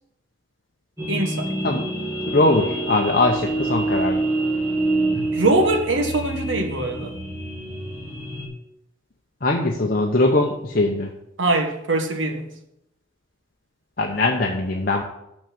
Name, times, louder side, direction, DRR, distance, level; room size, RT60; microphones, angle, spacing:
sound 1, 1.0-8.5, right 2 dB, 15° right, 1.7 m, -26 dB
voice 1, 1.1-1.5 5.3-7.1 11.4-12.5, right 2 dB, 85° right, 1.2 m, -22 dB
voice 2, 2.3-4.2 9.4-11.1 14.0-15.0, left 2 dB, 50° left, 0.8 m, -21 dB
6.4 x 6.2 x 7.1 m
head